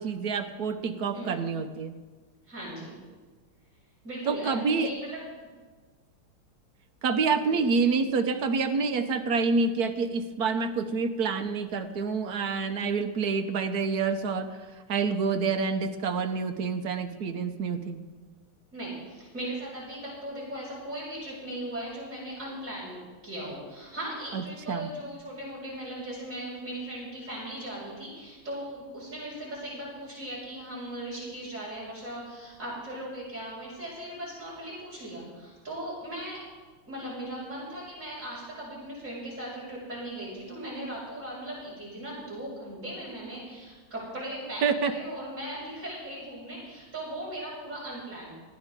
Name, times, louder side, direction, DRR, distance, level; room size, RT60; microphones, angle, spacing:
voice 1, 0.0-1.9 4.3-4.9 7.0-14.6 14.9-18.0 24.3-24.9 44.6-44.9, right 4 dB, 55° right, 6 dB, 1.2 m, -27 dB
voice 2, 2.5-3.0 4.0-5.2 7.5-7.7 18.7-36.4 36.8-48.4, right 1 dB, 35° right, -7 dB, 6.5 m, -38 dB
20.0 x 15.0 x 3.7 m, 1.4 s
omnidirectional pair, 2.4 m